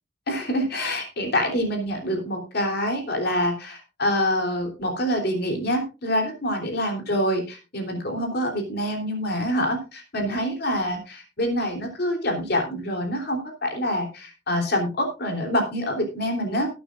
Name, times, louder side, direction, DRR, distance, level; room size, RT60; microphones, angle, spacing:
voice 1, 0.3-16.7, equal, 55° left, 3 dB, 3.4 m, -26 dB
19.0 x 9.2 x 2.5 m, 0.30 s
head